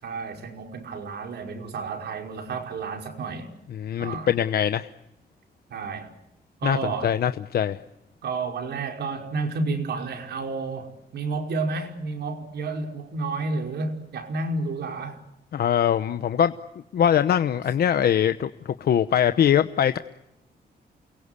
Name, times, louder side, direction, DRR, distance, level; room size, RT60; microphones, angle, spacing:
voice 1, 0.0-3.5 4.0-4.3 5.7-6.1 6.6-7.2 8.2-15.2, right 3 dB, 90° right, 5.3 m, -31 dB
voice 2, 3.7-4.9 6.6-6.8 7.0-7.8 15.5-16.5 16.9-20.0, left 9 dB, 70° left, 0.9 m, -22 dB
29.0 x 22.5 x 8.3 m
wide cardioid pair, 145°, 17 cm